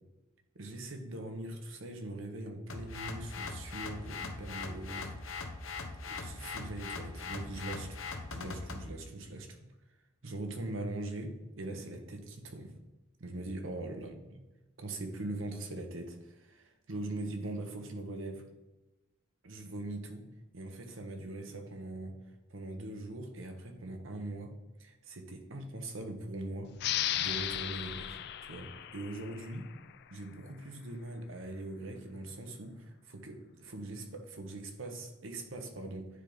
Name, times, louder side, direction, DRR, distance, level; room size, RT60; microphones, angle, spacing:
voice 1, 0.5-5.1 6.1-8.0 8.3-9.6 10.2-12.7 13.2-14.4 14.8-18.4 19.4-20.2 20.5-22.2 22.5-24.5 24.8-26.7 27.2-29.7 30.1-36.1, right 2 dB, 75° right, 5 dB, 1.0 m, -41 dB
sound 1, 2.7-8.9, left 4 dB, 85° left, 0.8 m, -41 dB
sound 2, 26.8-30.0, left 12 dB, 55° left, 0.3 m, -36 dB
9.7 x 3.5 x 3.9 m, 1.1 s
head